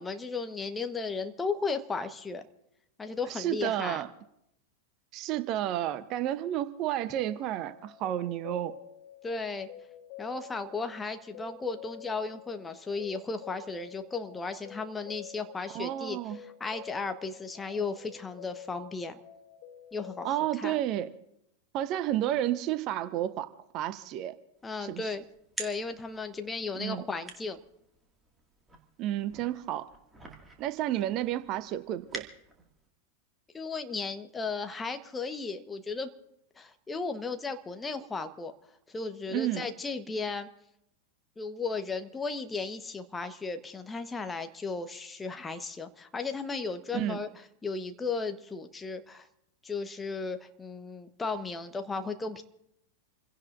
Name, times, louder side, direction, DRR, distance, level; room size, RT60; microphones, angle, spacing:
voice 1, 0.0-2.4 3.0-4.0 9.2-9.7 10.2-19.2 19.9-20.3 20.6-20.8 24.6-25.2 25.6-27.6 33.5-36.1 36.6-38.5 38.9-40.5 41.4-47.3 47.6-49.3 49.6-52.4, left 4 dB, 15° left, 7 dB, 1.2 m, -35 dB
voice 2, 3.3-4.1 5.1-8.8 15.7-16.4 20.2-21.1 21.7-24.3 24.8-25.1 26.8-27.0 29.0-29.9 30.6-32.2 39.3-39.7 46.9-47.2, right 12 dB, 40° right, 13 dB, 0.8 m, -31 dB
sound 1, 7.2-20.4, left 10 dB, 45° left, 1.3 m, -49 dB
sound 2, 24.6-32.9, right 2 dB, 10° right, 2.1 m, -48 dB
28.5 x 16.5 x 2.6 m, 0.80 s
figure-of-eight pair, 90°, 0 cm